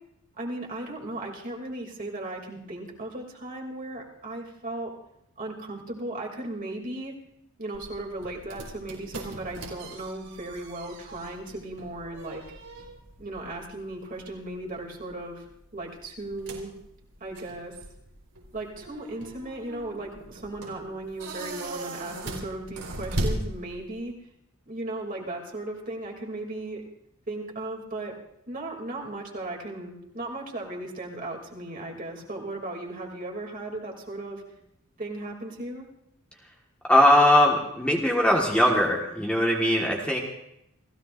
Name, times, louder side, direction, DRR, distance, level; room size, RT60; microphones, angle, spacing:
voice 1, 0.4-4.9 5.4-7.1 7.6-12.4 13.2-15.4 15.7-16.7 17.2-17.8 18.5-24.1 24.7-26.8 27.3-28.2 28.5-34.4 35.0-35.9, right 2 dB, 40° right, 0 dB, 2.7 m, -36 dB
sound 1, 7.7-24.1, right 1 dB, 85° right, 4.2 m, -39 dB
voice 2, 36.9-40.2, left 1 dB, 5° left, -1 dB, 1.5 m, -20 dB
29.5 x 16.5 x 2.6 m, 0.80 s
head